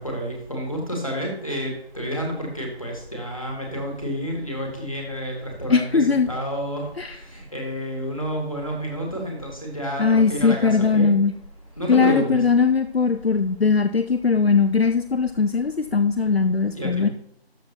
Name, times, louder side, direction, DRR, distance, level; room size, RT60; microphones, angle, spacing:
voice 1, 0.0-6.9 7.3-11.1 11.8-12.4 16.7-17.1, equal, 30° left, 0 dB, 2.0 m, -29 dB
voice 2, 5.7-6.3 7.0-7.2 10.0-11.3 11.9-17.1, left 5 dB, 70° left, 9 dB, 0.6 m, -20 dB
12.5 x 6.0 x 2.8 m, 0.72 s
figure-of-eight pair, 175°, 32 cm